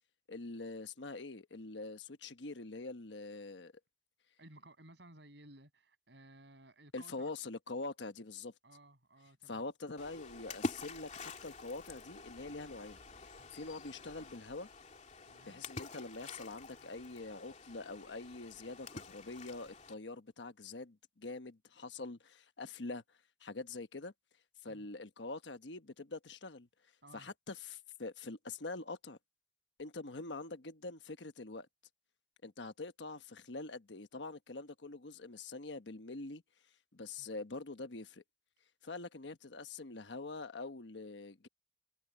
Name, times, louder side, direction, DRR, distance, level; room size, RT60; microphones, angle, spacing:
voice 1, 0.3-3.7 6.9-8.5 9.5-13.0 13.5-14.7 15.4-23.0 23.4-24.1 24.6-26.7 27.1-29.2 29.8-31.7 32.4-36.4 36.9-38.2 38.8-41.5, left 3 dB, 85° left, 1.2 m, -45 dB
voice 2, 4.4-7.3 8.6-9.6 15.3-15.6 24.7-24.9 27.0-27.3 37.2-37.3, right 1 dB, 75° right, 6.9 m, -58 dB
Splash splatter, 10.0-19.9, left 3 dB, 40° left, 2.5 m, -47 dB
head